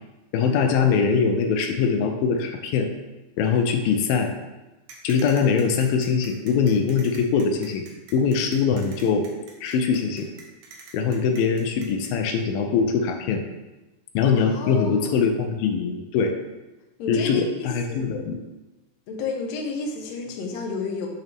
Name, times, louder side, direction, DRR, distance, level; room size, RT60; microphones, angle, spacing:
voice 1, 0.3-2.9 3.4-4.3 5.0-7.8 8.1-9.3 9.6-10.3 10.9-13.4 14.1-16.3 17.1-18.4, left 6 dB, 85° left, 5 dB, 2.5 m, -22 dB
sound 1, 4.9-12.1, right 4 dB, 80° right, 3.0 m, -45 dB
voice 2, 14.4-15.3 17.0-18.0 19.1-21.1, left 4 dB, 65° left, 1 dB, 1.8 m, -31 dB
8.7 x 6.4 x 3.5 m, 1.1 s
omnidirectional pair, 4.1 m